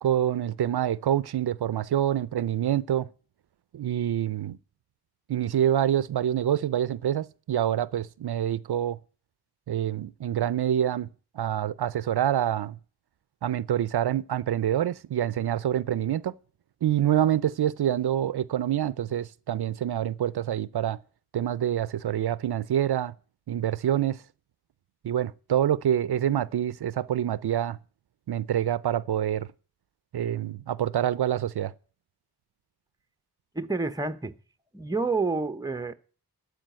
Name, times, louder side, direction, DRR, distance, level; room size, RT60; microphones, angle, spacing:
voice 1, 0.0-3.1 3.7-4.6 5.3-9.0 9.7-11.1 11.3-12.8 13.4-16.3 16.8-21.0 21.3-23.1 23.5-24.2 25.0-27.8 28.3-29.5 30.1-31.7, right 10 dB, 80° right, 0.5 m, -26 dB
voice 2, 33.5-34.4 34.7-35.9, right 3 dB, 10° right, 0.8 m, -28 dB
13.5 x 5.0 x 9.1 m
wide cardioid pair, 90°, 38 cm